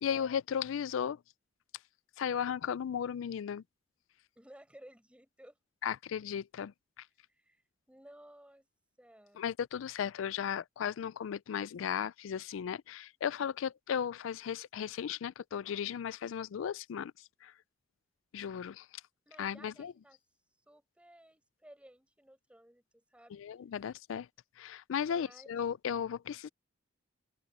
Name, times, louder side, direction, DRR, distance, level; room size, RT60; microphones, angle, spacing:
voice 1, 0.0-1.2 2.2-3.6 5.8-6.7 9.4-17.1 17.4-17.5 18.3-18.8 19.4-19.9 23.3-24.3 24.6-26.5, left 8 dB, 75° left, 0.3 m, -35 dB
voice 2, 4.3-5.6 7.3-7.6 7.9-8.7 9.0-9.4 19.2-20.2 20.7-23.4 25.1-25.6, right 1 dB, 5° right, 5.0 m, -57 dB
head